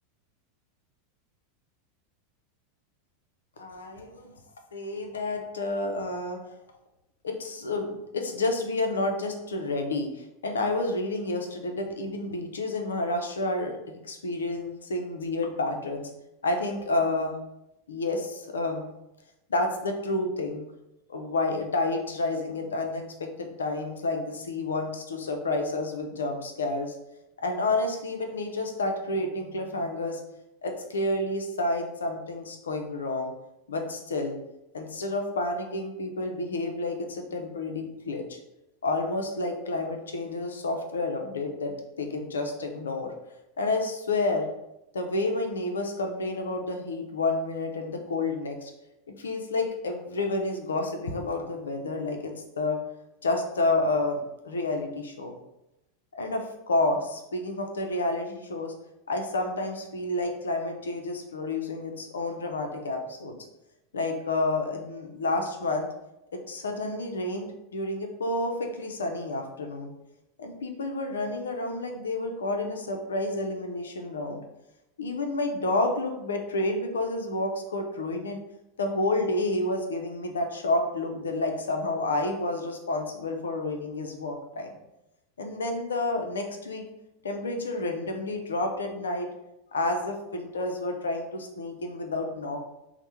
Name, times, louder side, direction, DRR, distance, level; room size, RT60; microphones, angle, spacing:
voice 1, 3.6-4.3 4.7-6.4 7.2-16.1 16.4-17.4 17.9-18.9 19.5-20.6 21.1-27.0 27.4-30.2 30.6-33.3 33.7-34.3 34.7-38.4 38.8-43.1 43.6-44.5 44.9-48.7 49.1-52.8 53.2-55.4 56.1-58.7 59.1-63.4 63.9-65.9 66.3-69.9 70.4-74.4 75.0-78.4 78.8-84.7 85.4-86.8 87.2-89.3 89.7-92.6, left 2 dB, 85° left, 4 dB, 0.4 m, -30 dB
3.3 x 2.0 x 2.8 m, 0.91 s
hypercardioid pair, 95°, 0 cm